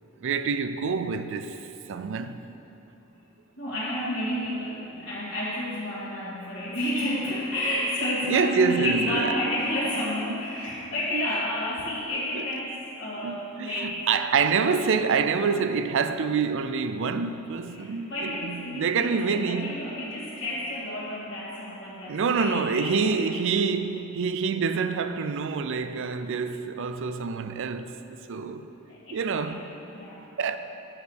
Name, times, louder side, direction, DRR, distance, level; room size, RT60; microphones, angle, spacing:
voice 1, 0.2-2.4 8.3-9.3 10.3-10.4 11.1-11.2 12.4-12.5 13.2-19.8 22.1-28.7 29.1-29.7 30.4-30.6, right 5 dB, 65° right, 0.4 m, -27 dB
voice 2, 3.6-14.3 17.7-23.3 28.9-30.3, left 1 dB, 55° left, 2.1 m, -31 dB
9.7 x 4.9 x 6.3 m
head